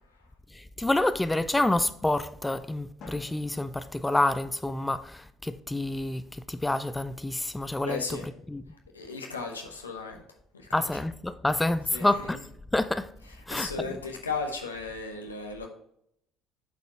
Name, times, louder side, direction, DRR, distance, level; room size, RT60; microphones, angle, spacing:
voice 1, 0.6-8.0 8.5-8.6 10.7-12.4 12.7-13.1 13.5-14.0, left 2 dB, 10° left, 0.4 m, -28 dB
Drum, 3.0-5.0, left 3 dB, 55° left, 1.7 m, -52 dB
voice 2, 7.8-8.3 8.9-10.2 10.5-10.9 11.9-12.3 13.5-15.7, left 4 dB, 85° left, 0.9 m, -35 dB
7.8 x 4.3 x 4.2 m
figure-of-eight pair, 55°, 0 cm